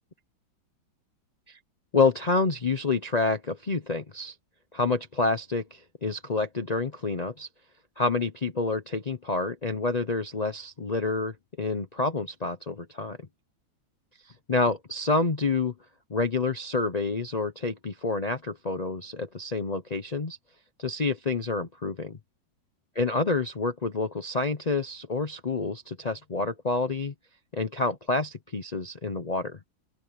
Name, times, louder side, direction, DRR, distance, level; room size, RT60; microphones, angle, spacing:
voice 1, 1.9-4.3 4.7-7.5 8.0-13.3 14.5-15.7 16.1-20.4 20.8-22.2 22.9-27.1 27.5-29.6, left 3 dB, 90° left, 0.3 m, -28 dB
open air
omnidirectional pair, 2.1 m